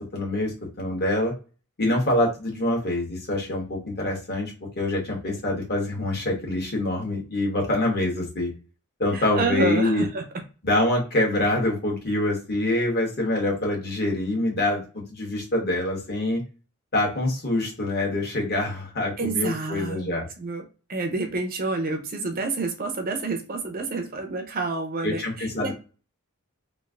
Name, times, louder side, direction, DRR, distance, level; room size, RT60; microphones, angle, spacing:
voice 1, 0.0-1.3 1.8-8.5 9.0-10.0 10.6-16.4 16.9-20.3 25.0-25.7, left 1 dB, 45° left, -1 dB, 1.2 m, -25 dB
voice 2, 9.1-10.4 19.2-20.6 20.9-25.7, right 3 dB, 40° right, 4 dB, 0.6 m, -29 dB
3.1 x 2.5 x 2.4 m, 0.33 s
head